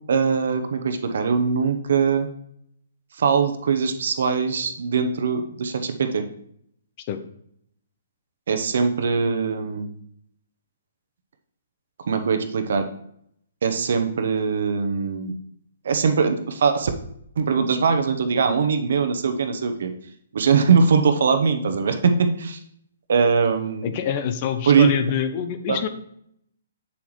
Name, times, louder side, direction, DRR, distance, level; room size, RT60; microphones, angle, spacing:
voice 1, 0.1-2.3 3.2-6.2 8.5-9.9 12.1-12.9 13.6-15.3 15.8-16.9 17.4-19.9 20.3-22.6 23.1-23.9 24.7-24.9 25.7-25.8, right 5 dB, 65° right, 8 dB, 0.9 m, -21 dB
voice 2, 23.8-25.9, left 9 dB, 40° left, 9 dB, 0.8 m, -26 dB
7.5 x 7.2 x 3.2 m, 0.70 s
hypercardioid pair, 135°, 0 cm